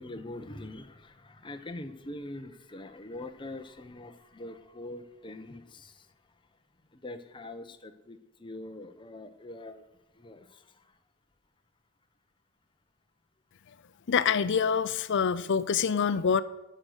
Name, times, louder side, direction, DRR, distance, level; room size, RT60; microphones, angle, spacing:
voice 1, 0.0-6.1 6.9-9.9 10.1-11.0, left 1 dB, 20° left, 7 dB, 0.9 m, -43 dB
voice 2, 14.1-16.4, left 6 dB, 55° left, 15 dB, 0.5 m, -26 dB
18.0 x 6.5 x 6.4 m, 0.95 s
head